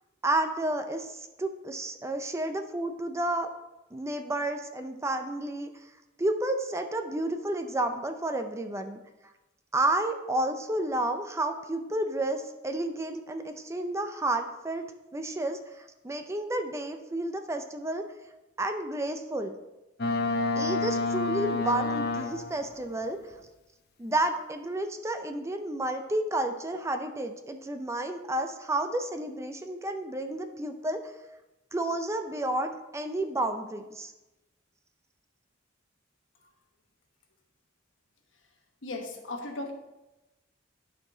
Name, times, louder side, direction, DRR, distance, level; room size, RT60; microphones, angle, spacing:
voice 1, 0.2-3.5 3.9-5.7 6.2-9.0 9.7-14.8 15.1-18.0 18.6-19.6 20.5-23.2 24.0-31.1 31.7-34.1, right 1 dB, 15° right, 7 dB, 0.5 m, -31 dB
Boat Water vehicle, 20.0-22.7, left 3 dB, 55° left, 0.7 m, -29 dB
voice 2, 38.8-39.7, left 2 dB, 70° left, 3 dB, 1.2 m, -36 dB
11.0 x 4.8 x 3.8 m, 1.0 s
head